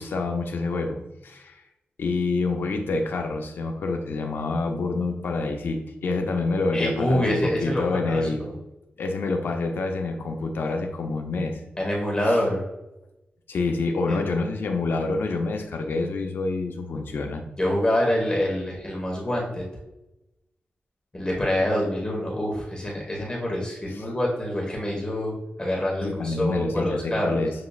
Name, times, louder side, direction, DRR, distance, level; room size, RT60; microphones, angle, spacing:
voice 1, 0.0-1.6 2.0-8.4 9.0-11.6 13.5-17.4 26.0-27.5, left 3 dB, 80° left, 4 dB, 0.6 m, -27 dB
voice 2, 6.7-8.5 11.8-12.6 14.1-14.2 17.6-19.6 21.1-25.3 25.6-27.4, left 1 dB, 25° left, -2 dB, 1.3 m, -26 dB
6.9 x 3.0 x 2.4 m, 0.94 s
wide cardioid pair, 90°, 4 cm